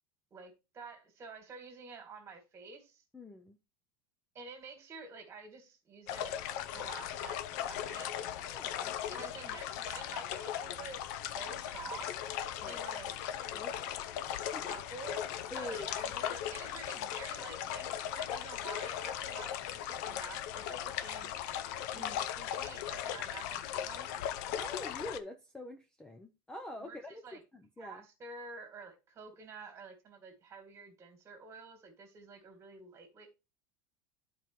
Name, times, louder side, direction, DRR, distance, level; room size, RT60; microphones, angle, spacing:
voice 1, 0.3-3.0 4.3-6.4 6.7-8.1 8.5-8.6 9.1-12.1 12.6-13.2 14.4-21.3 21.9-24.2 26.8-27.4 27.8-33.3, right 4 dB, 25° right, 2.2 m, -49 dB
voice 2, 3.1-3.6 8.4-9.3 12.6-12.8 13.5-14.0 14.5-14.7 15.5-15.9 21.9-22.2 24.6-27.2 27.5-28.0, left 1 dB, 5° left, 0.5 m, -46 dB
sound 1, 6.1-25.2, left 10 dB, 60° left, 0.6 m, -38 dB
11.0 x 4.6 x 3.1 m
supercardioid pair, 150°, 10 cm